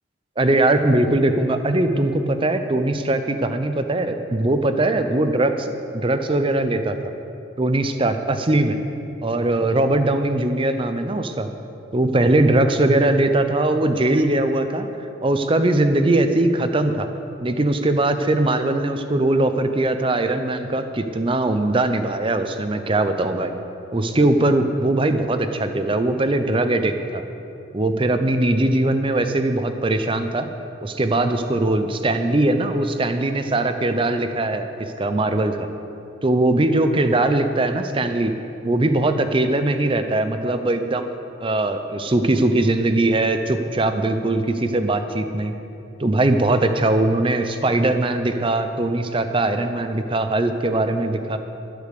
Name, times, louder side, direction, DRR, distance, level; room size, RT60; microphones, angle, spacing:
voice 1, 0.4-7.1 7.6-8.8 9.2-11.5 11.9-14.9 15.2-17.1 17.4-23.5 23.9-27.2 27.7-30.5 30.8-35.7 36.2-38.3 38.6-41.1 41.4-45.5 46.0-51.4, right 2 dB, 25° right, 8 dB, 0.5 m, -20 dB
11.5 x 8.2 x 6.7 m, 2.8 s
head